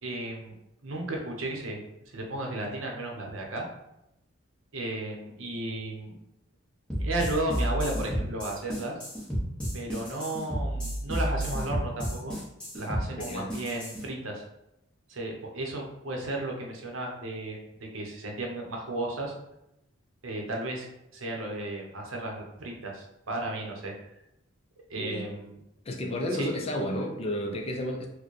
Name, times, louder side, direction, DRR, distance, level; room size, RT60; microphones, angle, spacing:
voice 1, 0.0-0.5 0.8-3.6 4.7-6.1 7.0-9.0 9.7-12.4 12.7-14.4 15.1-19.3 20.2-20.9 21.1-23.9 24.9-25.6 26.3-26.5, right 1 dB, 70° right, 0 dB, 0.7 m, -34 dB
sound 1, 6.9-14.0, equal, 5° left, 0.8 m, -31 dB
voice 2, 13.2-13.5 25.0-25.3 25.9-28.1, left 1 dB, 30° left, 2 dB, 0.4 m, -32 dB
4.3 x 2.1 x 3.1 m, 0.85 s
head